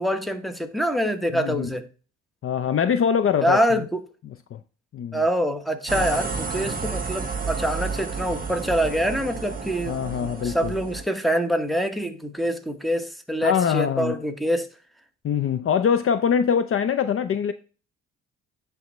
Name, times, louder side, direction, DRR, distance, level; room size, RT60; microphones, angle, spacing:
voice 1, 0.0-1.9 3.4-4.0 5.1-10.0 10.4-14.7, equal, ahead, 1.0 m, -25 dB
voice 2, 1.3-1.7 2.4-3.8 4.5-4.6 4.9-5.2 9.8-10.7 13.4-14.2 15.2-17.5, left 7 dB, 45° left, 0.5 m, -23 dB
sound 1, 5.9-11.0, right 4 dB, 25° right, 1.3 m, -31 dB
10.5 x 3.5 x 3.1 m
cardioid pair, 90°, 30 cm